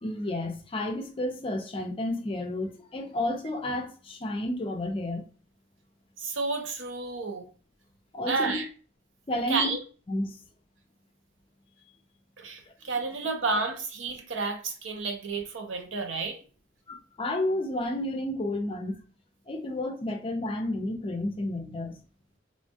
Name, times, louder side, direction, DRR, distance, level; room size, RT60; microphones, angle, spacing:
voice 1, 0.0-5.2 8.1-8.6 9.3-9.7 10.1-10.4 16.9-19.0 19.5-22.0, left 1 dB, 30° left, 0.5 m, -31 dB
voice 2, 6.2-7.5 8.3-8.7 9.5-9.8 12.4-16.4, right 4 dB, 75° right, 0.6 m, -31 dB
3.1 x 2.2 x 2.6 m
head